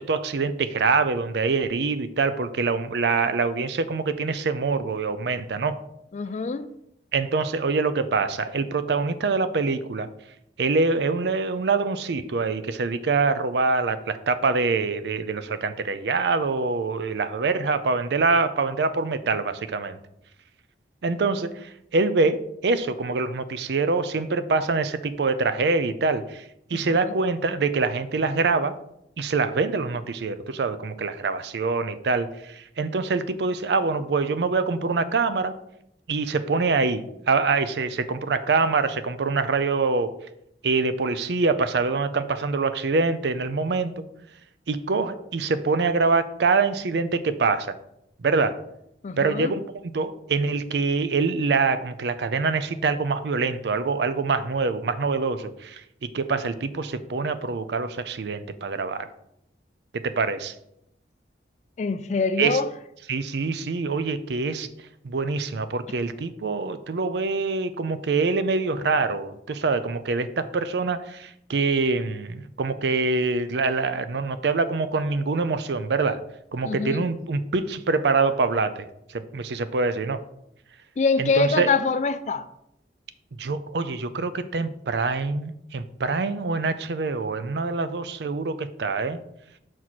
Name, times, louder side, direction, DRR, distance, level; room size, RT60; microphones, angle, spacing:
voice 1, 0.0-5.8 7.1-10.1 10.6-20.0 21.0-26.4 26.7-28.7 29.2-35.5 36.1-40.1 40.6-44.0 44.7-47.8 48.2-48.6 49.2-49.6 49.9-59.1 60.0-60.5 62.4-62.6 63.1-64.7 65.0-76.2 76.5-80.2 81.2-81.7 83.4-89.2, right 4 dB, 70° right, 0.5 m, -25 dB
voice 2, 6.1-6.7 26.7-27.1 49.0-49.5 61.8-62.7 76.6-77.0 81.0-82.5, left 4 dB, 40° left, 0.3 m, -25 dB
6.1 x 4.5 x 4.1 m
head